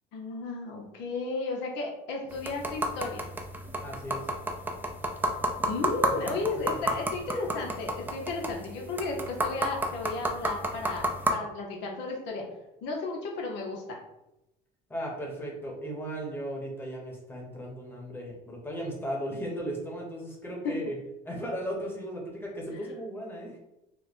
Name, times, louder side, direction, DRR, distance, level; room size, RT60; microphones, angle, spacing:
voice 1, 0.1-3.3 5.6-12.4 12.8-14.0, left 3 dB, 75° left, 0 dB, 0.9 m, -34 dB
sound 1, 2.3-11.3, right 1 dB, 10° right, 0.4 m, -32 dB
voice 2, 3.8-4.3 6.1-6.6 14.9-21.0 21.2-23.6, equal, 10° left, -2 dB, 1.1 m, -36 dB
3.3 x 2.1 x 4.2 m, 0.89 s
cardioid pair, 110°, 18 cm